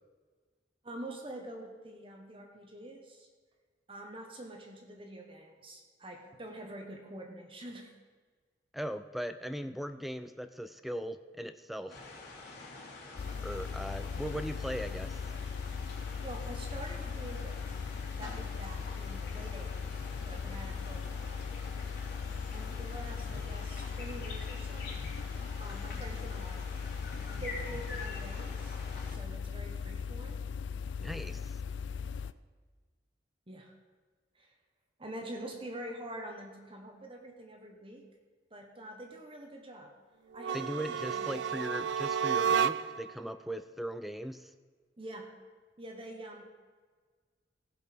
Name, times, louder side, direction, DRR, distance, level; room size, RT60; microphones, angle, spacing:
voice 1, 0.8-3.3 3.9-7.9 16.2-17.8 18.2-21.4 22.5-25.0 25.6-26.7 27.3-28.8 29.1-30.4 33.5-33.7 34.3-34.5 35.0-38.0 38.5-39.9 40.3-41.3 45.0-45.3 45.8-46.5, right 1 dB, 30° right, 2 dB, 1.2 m, -46 dB
voice 2, 8.7-12.0 13.4-15.2 31.0-31.6 40.5-44.5, equal, ahead, 10 dB, 0.3 m, -39 dB
sound 1, 11.9-29.2, left 3 dB, 65° left, 2.8 m, -47 dB
sound 2, 13.2-32.3, left 6 dB, 90° left, 0.4 m, -38 dB
sound 3, 40.4-43.1, right 7 dB, 85° right, 0.4 m, -31 dB
15.5 x 5.5 x 6.0 m, 1.5 s
head